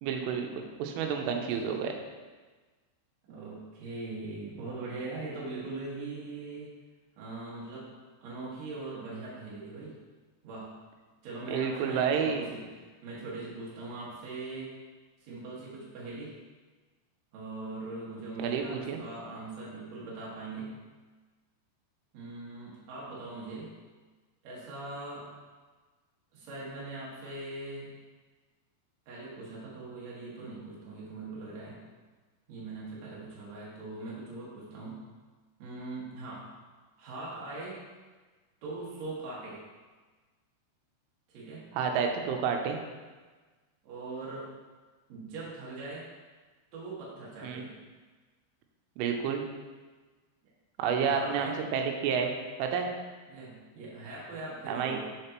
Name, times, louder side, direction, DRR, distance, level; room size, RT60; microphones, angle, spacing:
voice 1, 0.0-1.9 11.5-12.5 18.4-19.0 41.7-42.8 47.4-47.7 49.0-49.4 50.8-52.3 52.6-52.9 54.7-55.0, right 6 dB, 90° right, 3 dB, 3.2 m, -30 dB
voice 2, 3.3-6.7 7.2-7.9 8.2-9.9 10.4-10.8 11.2-12.6 13.0-14.8 15.2-16.3 17.3-20.7 22.1-23.8 24.4-25.3 26.3-27.9 29.1-31.8 32.5-35.0 35.6-36.5 37.0-37.8 38.6-39.6 41.3-41.7 43.8-44.5 45.1-46.1 46.7-47.7 50.9-51.6 53.3-55.0, right 3 dB, 55° right, -7 dB, 2.1 m, -41 dB
7.1 x 6.6 x 3.0 m, 1.3 s
omnidirectional pair, 5.5 m